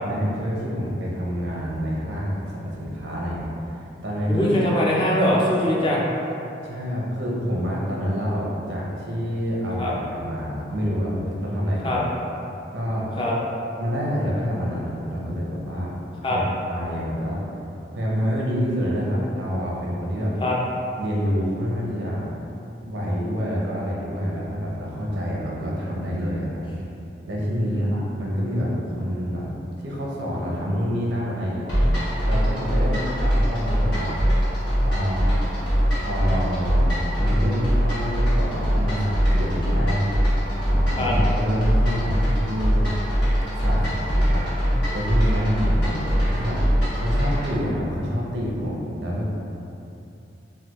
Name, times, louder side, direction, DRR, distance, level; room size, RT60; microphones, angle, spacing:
voice 1, 0.0-4.6 6.6-12.0 12.7-13.3 13.8-15.9 16.3-17.4 17.9-20.3 21.0-22.3 22.9-26.6 27.3-29.5 29.8-31.8 32.2-34.2 34.8-35.4 36.0-40.0 40.7-42.9 43.5-44.5 44.9-46.6 46.9-49.3, equal, 75° right, -4 dB, 0.6 m, -27 dB
voice 2, 4.3-6.0 9.8-9.9 11.8-12.0 13.2-13.3 16.2-16.4 20.4-20.6 27.6-28.0 41.0-41.1, left 1 dB, 30° left, -4 dB, 0.4 m, -22 dB
sound 1, 31.7-47.6, equal, 85° left, 1.2 m, -22 dB
3.3 x 2.2 x 2.9 m, 2.8 s
head